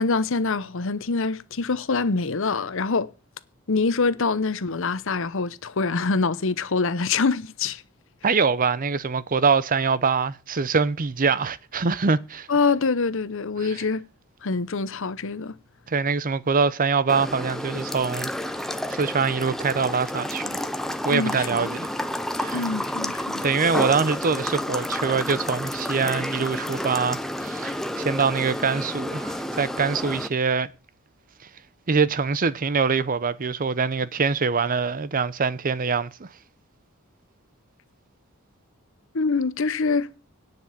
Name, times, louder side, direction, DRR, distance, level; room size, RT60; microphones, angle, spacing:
voice 1, 0.0-3.1 3.7-7.8 12.5-14.0 14.4-15.6 21.1-21.7 22.5-23.4 39.1-40.1, left 4 dB, 65° left, 0.8 m, -25 dB
voice 2, 8.2-12.5 15.9-18.6 18.9-20.6 21.0-21.9 22.4-22.7 23.4-30.7 31.9-36.3, right 5 dB, 40° right, 0.7 m, -24 dB
sound 1, 17.1-30.3, left 1 dB, ahead, 0.8 m, -30 dB
10.0 x 6.0 x 7.5 m
head